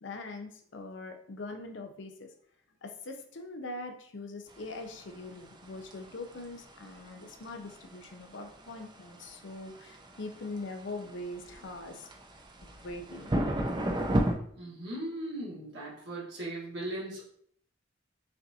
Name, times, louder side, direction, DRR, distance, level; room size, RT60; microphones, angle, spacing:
voice 1, 0.0-2.3 2.8-12.1 12.6-13.4 14.6-14.7, left 2 dB, 70° left, 5 dB, 0.6 m, -42 dB
sound 1, 4.5-14.3, right 1 dB, 25° right, 0.4 m, -35 dB
voice 2, 14.6-17.2, right 1 dB, 60° right, -5 dB, 1.5 m, -38 dB
5.6 x 2.6 x 2.7 m, 0.62 s
head